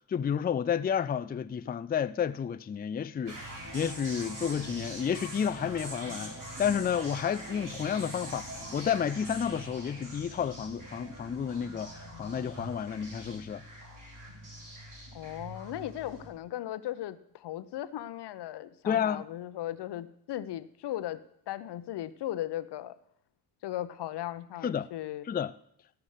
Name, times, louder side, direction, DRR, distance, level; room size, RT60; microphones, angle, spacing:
voice 1, 0.0-3.4 3.7-13.6 18.9-19.2 24.6-24.9 25.3-25.5, left 8 dB, 25° left, 0.4 m, -31 dB
sound 1, 3.2-16.3, right 1 dB, 50° right, 3.9 m, -43 dB
voice 2, 15.1-23.0 23.6-25.3, left 13 dB, 80° left, 0.7 m, -37 dB
14.5 x 5.9 x 6.5 m
cardioid pair, 80°, 40 cm